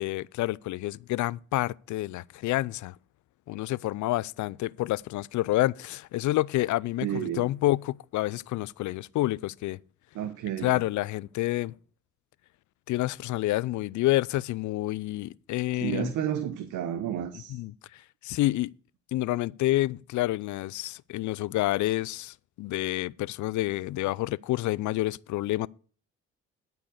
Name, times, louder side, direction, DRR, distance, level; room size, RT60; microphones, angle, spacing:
voice 1, 0.0-2.9 3.5-9.8 10.6-11.7 12.9-16.1 17.3-18.7 19.1-25.7, left 17 dB, 75° left, 0.5 m, -28 dB
voice 2, 7.0-7.5 10.1-10.8 15.8-17.6, right 10 dB, 90° right, 1.0 m, -31 dB
12.5 x 4.9 x 6.5 m
cardioid pair, 90°, 30 cm